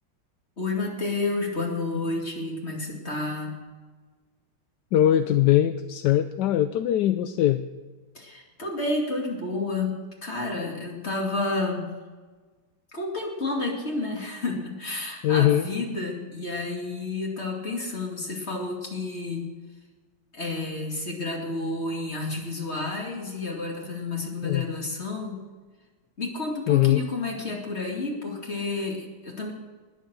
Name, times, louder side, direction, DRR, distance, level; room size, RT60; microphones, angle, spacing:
voice 1, 0.6-3.5 8.1-11.9 12.9-19.5 20.3-25.4 26.2-29.5, left 2 dB, 35° left, -1 dB, 2.6 m, -30 dB
voice 2, 4.9-7.6 15.2-15.7 24.4-24.7 26.7-27.0, left 12 dB, 70° left, 10 dB, 1.1 m, -21 dB
20.0 x 7.5 x 6.2 m, 1.4 s
omnidirectional pair, 2.1 m